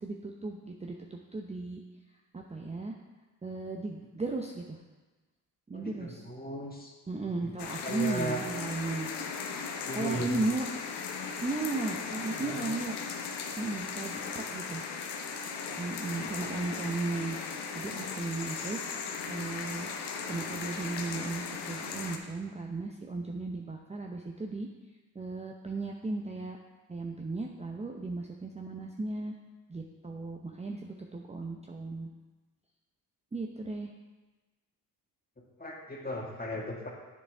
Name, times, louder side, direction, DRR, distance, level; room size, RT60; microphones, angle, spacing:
voice 1, 0.0-1.8 2.3-3.0 3.4-4.8 5.7-6.2 7.1-9.1 9.9-10.7 11.4-12.9 13.6-14.8 15.8-17.4 17.7-19.9 20.3-24.7 25.1-26.6 26.9-29.3 29.7-32.1 33.3-33.9, right 3 dB, 15° right, 1 dB, 0.7 m, -36 dB
voice 2, 5.7-6.9 7.3-7.5 7.8-8.4 9.9-10.4 12.3-12.7 14.6-14.9 15.7-16.2 35.6-36.9, equal, 20° left, -2 dB, 1.9 m, -37 dB
sound 1, 7.6-22.2, left 5 dB, 65° left, 1.0 m, -37 dB
8.1 x 6.3 x 3.5 m, 1.2 s
supercardioid pair, 60°, 44 cm